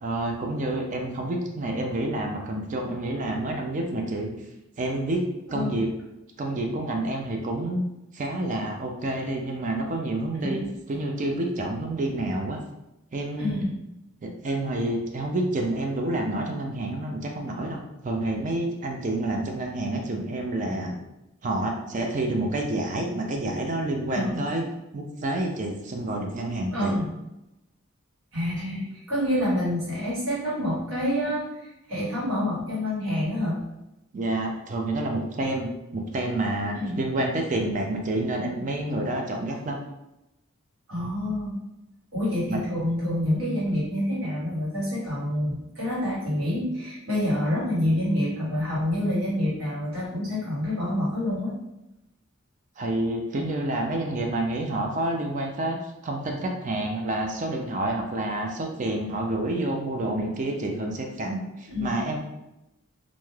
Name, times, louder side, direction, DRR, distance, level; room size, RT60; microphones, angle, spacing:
voice 1, 0.0-4.3 4.8-5.2 5.5-5.9 6.4-7.8 8.1-12.6 13.1-13.5 14.2-20.9 21.4-24.6 24.9-27.0 34.1-39.8 42.5-42.6 52.8-55.8 56.0-62.2, right 1 dB, 35° right, 2 dB, 0.3 m, -28 dB
voice 2, 13.4-13.7 24.1-24.4 26.7-27.1 28.3-33.7 36.7-37.0 40.9-41.6 42.1-51.5 61.7-62.0, left 1 dB, 65° right, -8 dB, 1.5 m, -27 dB
2.6 x 2.3 x 3.2 m, 0.91 s
head